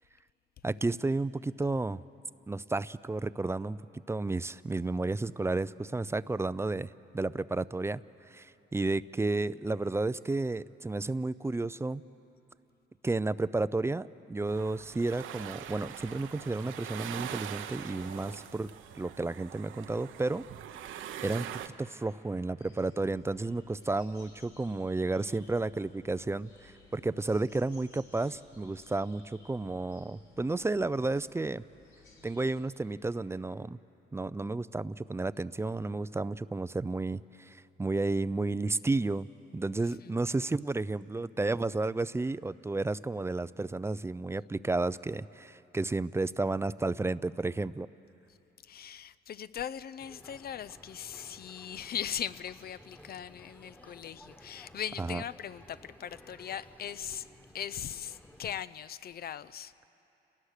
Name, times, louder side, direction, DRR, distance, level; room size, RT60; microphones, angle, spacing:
voice 1, 0.6-2.0 2.5-8.0 8.3-12.0 13.0-18.7 19.0-20.4 21.2-21.5 21.8-31.6 32.2-33.8 34.1-39.3 39.5-47.9 55.0-55.2, right 2 dB, 15° right, 16 dB, 0.4 m, -32 dB
sound 1, 14.5-21.7, right 10 dB, 80° right, 0.9 m, -43 dB
sound 2, 22.6-32.5, left 3 dB, 85° left, 5.9 m, -60 dB
voice 2, 39.8-40.1 48.3-48.4 48.6-57.3 57.5-59.7, left 9 dB, 50° left, 16 dB, 0.6 m, -39 dB
Boat Water vehicle, 50.0-58.6, left 1 dB, 10° left, 1.4 m, -55 dB
29.5 x 19.0 x 6.6 m, 2.9 s
cardioid pair, 90°, 20 cm